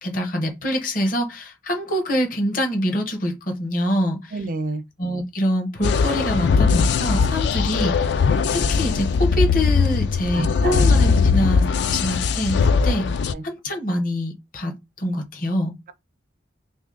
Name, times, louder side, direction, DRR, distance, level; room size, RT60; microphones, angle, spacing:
voice 1, 0.0-4.4 5.0-8.1 8.5-13.1 13.4-15.7, equal, 50° left, 0.8 m, -25 dB
voice 2, 4.3-4.8 10.3-10.9 13.3-13.4, right 2 dB, 50° right, 0.4 m, -29 dB
sound 1, 5.8-13.3, left 5 dB, 70° left, 0.3 m, -20 dB
2.9 x 2.7 x 3.7 m
head